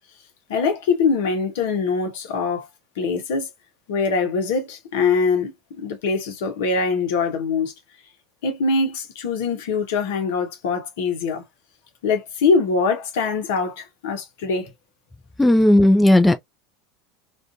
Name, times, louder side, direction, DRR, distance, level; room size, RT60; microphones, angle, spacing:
voice 1, 0.5-2.7 3.0-3.5 3.9-7.7 8.4-11.4 12.0-14.7, left 4 dB, 65° left, 0.8 m, -23 dB
voice 2, 15.4-16.3, left 1 dB, 10° left, 0.5 m, -14 dB
2.5 x 2.3 x 2.3 m
figure-of-eight pair, 75°, 0 cm